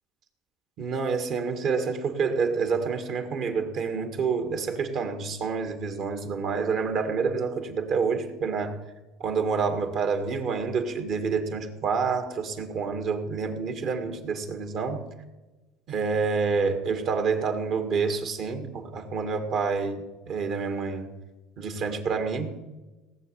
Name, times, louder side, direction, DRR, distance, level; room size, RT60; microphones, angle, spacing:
voice 1, 0.8-8.8 9.2-15.1 15.9-21.1 21.6-22.6, right 5 dB, 60° right, 7 dB, 2.0 m, -28 dB
18.0 x 7.4 x 7.1 m, 1.1 s
supercardioid pair, 95°, 0 cm